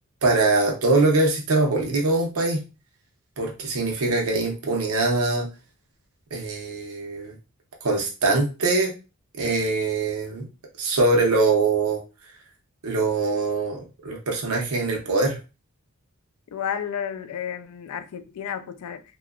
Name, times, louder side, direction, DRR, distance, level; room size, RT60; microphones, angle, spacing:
voice 1, 0.2-2.6 3.4-5.5 6.3-7.3 7.8-8.9 9.4-10.4 10.8-12.0 12.8-15.4, right 3 dB, 85° right, 0.7 m, -23 dB
voice 2, 16.5-19.0, left 8 dB, 90° left, 0.4 m, -32 dB
2.9 x 2.2 x 2.3 m
head